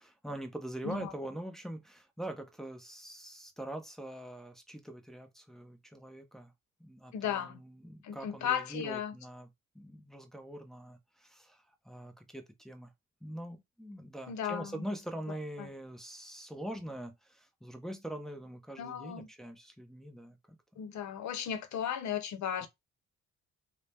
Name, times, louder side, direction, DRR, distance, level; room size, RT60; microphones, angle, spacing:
voice 1, 0.0-6.5 6.8-9.5 9.7-12.9 13.2-20.4 22.6-22.7, right 1 dB, ahead, 0.7 m, -43 dB
voice 2, 7.1-7.6 8.0-9.1 14.3-14.9 15.6-15.7 18.8-19.3 20.8-22.7, left 9 dB, 70° left, 0.8 m, -35 dB
2.8 x 2.1 x 3.4 m
cardioid pair, 90°, 30 cm